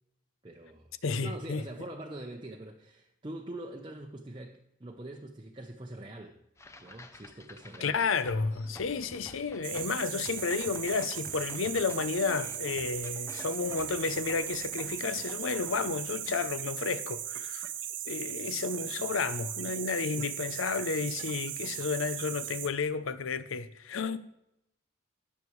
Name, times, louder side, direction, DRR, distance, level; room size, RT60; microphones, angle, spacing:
voice 1, 0.4-0.9 1.2-6.4 6.8-8.0 20.2-20.3, right 1 dB, 25° right, 0.7 m, -43 dB
voice 2, 1.0-1.7 7.8-17.7 18.1-24.2, left 4 dB, 85° left, 0.6 m, -32 dB
sound 1, 6.6-15.9, left 2 dB, 15° left, 0.5 m, -50 dB
sound 2, 8.5-17.1, left 1 dB, 30° left, 3.9 m, -57 dB
sound 3, 9.6-22.7, right 11 dB, 60° right, 0.8 m, -38 dB
17.5 x 6.9 x 3.2 m
head